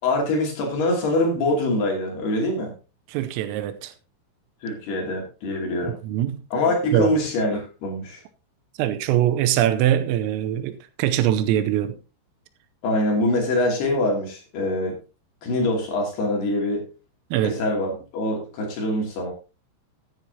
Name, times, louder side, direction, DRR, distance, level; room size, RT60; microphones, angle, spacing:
voice 1, 0.0-2.7 4.6-6.0 6.5-8.2 12.8-15.0 15.4-16.8 17.4-19.3, left 1 dB, 55° left, 4.4 m, -24 dB
voice 2, 3.1-3.9 6.0-6.4 6.9-7.1 8.8-12.0 17.3-17.6, right 12 dB, 85° right, 3.3 m, -22 dB
14.5 x 9.4 x 2.8 m
omnidirectional pair, 6.0 m